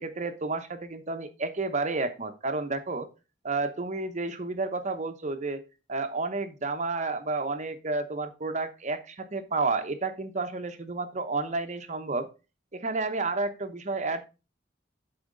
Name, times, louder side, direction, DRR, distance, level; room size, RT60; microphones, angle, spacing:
voice 1, 0.0-3.1 3.4-5.6 5.9-12.3 12.7-14.3, right 3 dB, 40° right, 8 dB, 0.9 m, -31 dB
11.0 x 4.4 x 3.9 m, 0.30 s
head